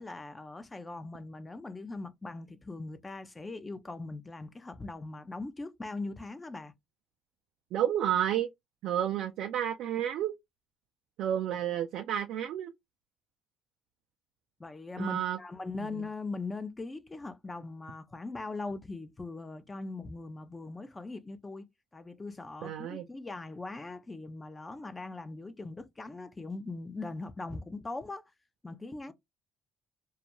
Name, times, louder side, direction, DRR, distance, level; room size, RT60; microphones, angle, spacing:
voice 1, 0.0-6.7 14.6-21.7 21.9-28.2 28.6-29.1, left 3 dB, 20° left, 0.5 m, -40 dB
voice 2, 7.7-8.5 8.8-10.3 11.2-12.7 15.0-15.4 22.6-23.1, right 10 dB, 70° right, 0.3 m, -30 dB
2.3 x 2.2 x 2.8 m
hypercardioid pair, 60°, 0 cm